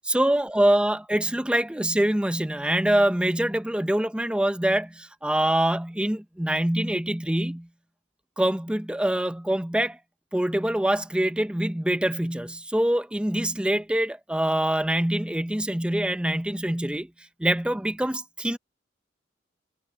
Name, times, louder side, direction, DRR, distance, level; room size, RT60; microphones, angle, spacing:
voice 1, 0.1-7.7 8.4-10.0 10.3-17.1 17.4-18.6, right 1 dB, 5° right, 0.5 m, -24 dB
head